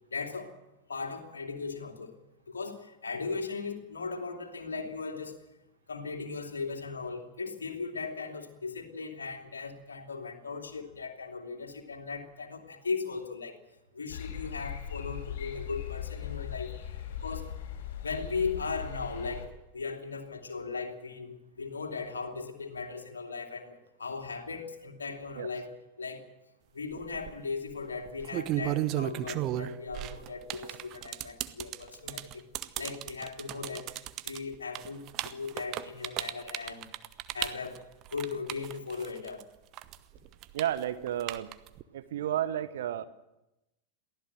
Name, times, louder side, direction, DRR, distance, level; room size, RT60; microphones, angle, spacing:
voice 1, 0.1-0.5 0.9-2.1 2.5-5.4 5.9-13.6 13.9-16.7 17.2-17.5 18.0-19.5 19.7-26.3 26.7-32.4 32.8-33.9 34.2-36.9 37.3-37.8 38.1-39.4, left 4 dB, 70° left, 3 dB, 2.8 m, -38 dB
sound 1, 14.1-19.5, left 9 dB, 55° left, 4.3 m, -39 dB
sound 2, 27.0-27.3 28.1-39.4 39.7-41.8, right 14 dB, 35° right, 1.0 m, -34 dB
voice 2, 40.5-41.5 41.9-43.0, right 11 dB, 60° right, 12 dB, 1.1 m, -32 dB
23.0 x 16.0 x 7.7 m, 0.92 s
figure-of-eight pair, 90°, 0 cm